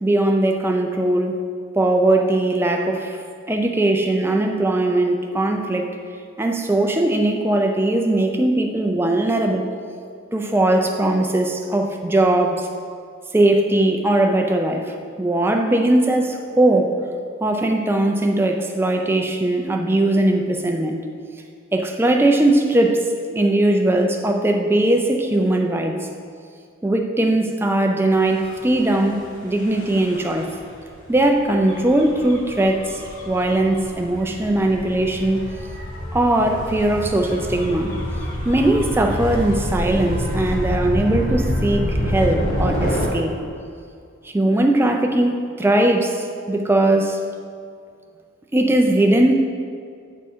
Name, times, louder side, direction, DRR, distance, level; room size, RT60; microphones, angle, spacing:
voice 1, 0.0-1.4 1.8-3.2 3.5-5.9 6.4-9.7 10.3-12.7 13.3-16.9 17.4-21.0 21.7-26.0 26.8-30.5 31.1-33.0 33.3-35.4 36.1-37.9 38.4-43.3 44.2-47.2 48.5-49.3, right 1 dB, 10° right, 3 dB, 0.4 m, -19 dB
Gull seagull / Waves surf / Siren, 28.3-43.1, equal, 40° left, 1.1 m, -27 dB
9.3 x 3.6 x 4.3 m, 2.3 s
head